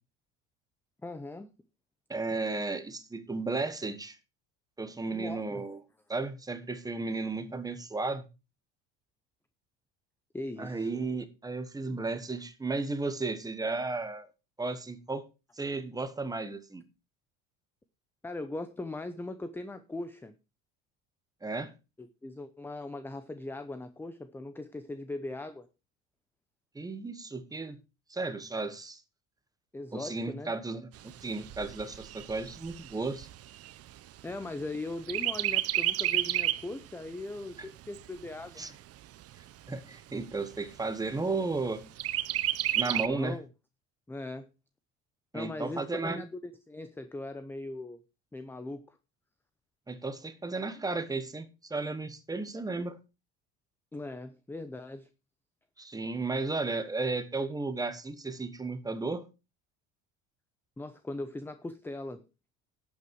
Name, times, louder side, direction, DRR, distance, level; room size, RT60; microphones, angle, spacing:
voice 1, 1.0-1.5 5.1-5.6 10.3-10.9 18.2-20.3 22.0-25.7 29.7-30.5 34.2-38.6 42.8-43.5 44.1-44.5 45.3-48.0 48.3-49.0 53.9-55.1 60.8-62.2, left 2 dB, 5° left, 0.7 m, -39 dB
voice 2, 2.1-4.2 4.8-5.8 6.1-8.2 10.6-14.3 14.6-15.3 15.6-16.8 21.4-21.7 26.7-27.8 28.1-29.0 29.9-30.9 31.2-33.3 38.6-38.7 39.7-41.8 42.7-43.4 45.3-46.2 49.9-53.0 55.8-59.3, right 3 dB, 10° right, 1.3 m, -34 dB
Chirp tweet, 30.9-34.7 35.1-36.7 37.2-37.3 37.6-38.6 39.2-39.3 39.7-39.8 40.2-40.7 42.0-43.1, right 13 dB, 45° right, 0.8 m, -31 dB
11.5 x 8.5 x 4.7 m
cardioid pair, 145°, 35 cm